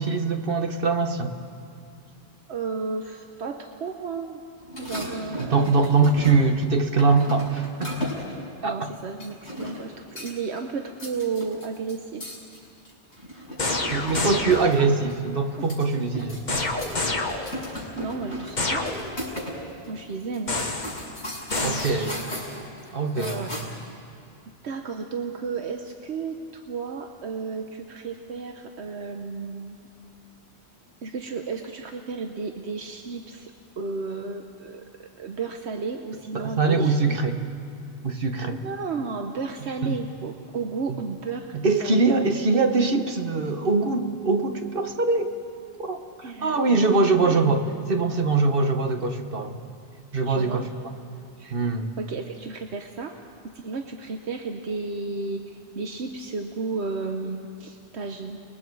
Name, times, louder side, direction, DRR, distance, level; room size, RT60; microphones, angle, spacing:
voice 1, 0.0-1.3 5.4-8.1 8.6-8.9 13.9-16.6 21.6-22.2 22.9-23.7 36.3-37.4 38.0-38.6 39.8-40.0 40.9-41.0 41.5-45.3 45.8-46.0 46.4-49.6 50.1-50.6 51.5-51.9, right 3 dB, 55° right, 6 dB, 1.4 m, -23 dB
voice 2, 2.5-4.4 4.8-5.9 8.6-12.3 13.7-15.1 15.6-15.7 18.0-19.0 19.9-20.6 21.6-22.1 23.2-23.6 24.6-29.9 31.0-37.2 38.6-41.5 41.8-42.1 46.2-47.4 50.3-50.6 51.4-51.6 52.0-53.2 53.5-58.4, right 4 dB, 75° right, 4 dB, 1.2 m, -33 dB
sound 1, 4.6-6.6 7.0-8.4 9.2-9.9 10.2-10.6 10.9-14.8 15.1-15.2 15.5-17.0 17.2-19.6 19.8-19.9 20.3-23.9, left 1 dB, 80° left, 6.1 m, -36 dB
sound 2, 13.6-14.9 16.5-17.8 18.6-19.3 20.5-21.1 21.5-22.2, left 2 dB, 40° left, 1.6 m, -28 dB
30.0 x 21.0 x 4.7 m, 2.5 s
omnidirectional pair, 1.1 m